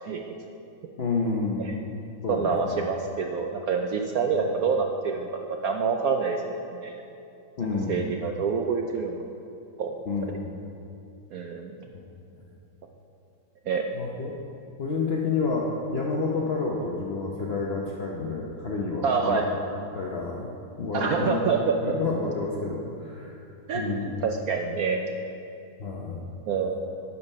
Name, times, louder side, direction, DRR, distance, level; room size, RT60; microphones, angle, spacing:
voice 1, 1.0-1.8 2.2-2.9 7.6-8.1 10.1-10.5 11.9-12.0 13.9-14.4 14.8-20.5 20.8-21.4 21.7-23.3 23.7-24.2 25.8-26.2, left 4 dB, 70° left, -2 dB, 0.5 m, -29 dB
voice 2, 2.3-5.3 5.6-6.9 7.9-9.1 9.8-9.9 11.3-11.7 13.7-13.8 19.0-19.5 20.9-21.7 23.7-25.1 26.5-26.8, right 5 dB, 80° right, 3 dB, 0.8 m, -27 dB
11.5 x 5.5 x 5.4 m, 2.6 s
omnidirectional pair, 2.1 m